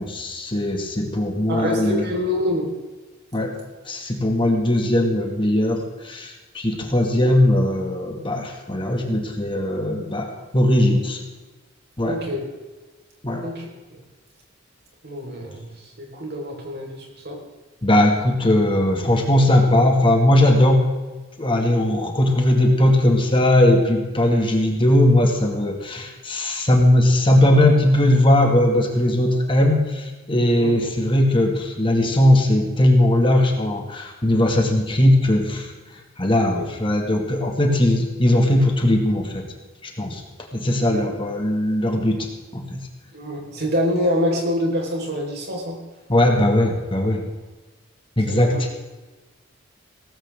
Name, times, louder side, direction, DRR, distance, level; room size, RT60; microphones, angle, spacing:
voice 1, 0.0-2.1 3.3-3.5 3.9-11.2 12.0-12.2 13.2-13.4 17.8-20.9 21.4-35.7 36.2-39.4 39.8-40.2 40.5-42.8 46.1-47.2 48.2-48.7, left 1 dB, 25° left, 2 dB, 2.1 m, -19 dB
voice 2, 1.5-2.7 12.0-12.4 13.4-13.7 15.0-15.7 16.0-17.4 30.5-30.7 36.5-36.6 40.9-41.0 43.1-45.8 48.3-48.6, left 1 dB, 55° right, 0 dB, 4.6 m, -25 dB
18.0 x 15.5 x 3.7 m, 1.2 s
head